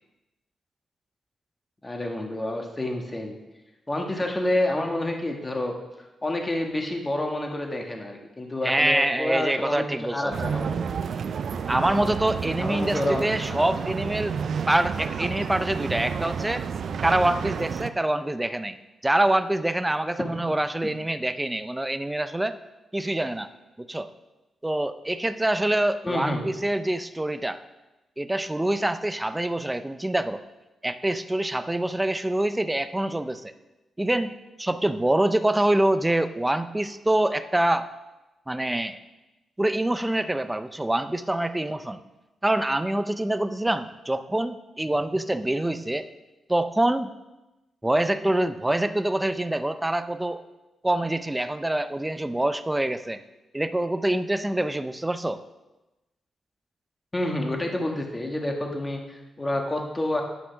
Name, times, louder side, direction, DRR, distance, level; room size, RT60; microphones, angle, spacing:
voice 1, 1.8-3.4 3.9-5.7 6.2-10.8 12.6-13.6 20.2-20.3 26.0-26.5 57.1-60.2, left 1 dB, 20° left, 2 dB, 1.5 m, -28 dB
voice 2, 8.6-10.3 11.7-14.4 14.7-16.6 17.0-18.8 19.0-22.6 22.9-23.5 23.8-24.1 24.6-27.6 28.2-30.4 30.8-33.5 34.0-34.3 34.6-37.9 38.5-39.0 39.6-42.0 42.4-46.1 46.5-47.1 47.8-50.4 50.8-53.2 53.5-55.4, right 1 dB, 10° right, 11 dB, 0.5 m, -25 dB
sound 1, 10.3-17.9, right 6 dB, 65° right, 0.4 m, -30 dB
10.0 x 6.2 x 5.8 m, 1.0 s
cardioid pair, 95°, 0 cm